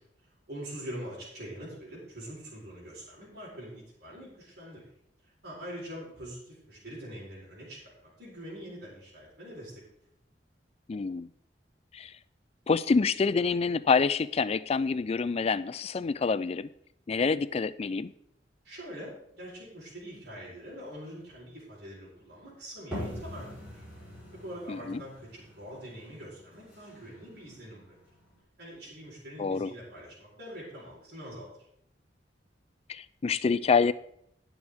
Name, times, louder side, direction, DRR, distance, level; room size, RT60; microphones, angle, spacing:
voice 1, 0.5-4.8 5.4-9.7 18.6-23.5 23.7-23.8 24.4-27.9 28.6-31.5, equal, 60° right, -6 dB, 4.1 m, -44 dB
voice 2, 10.9-11.3 11.9-12.1 12.7-16.7 17.1-18.1 24.7-25.0 29.4-29.7 32.9-33.9, left 5 dB, 35° left, 16 dB, 0.3 m, -27 dB
sound 1, 22.9-28.4, equal, 10° right, 4.9 m, -43 dB
18.5 x 6.2 x 3.6 m, 0.74 s
head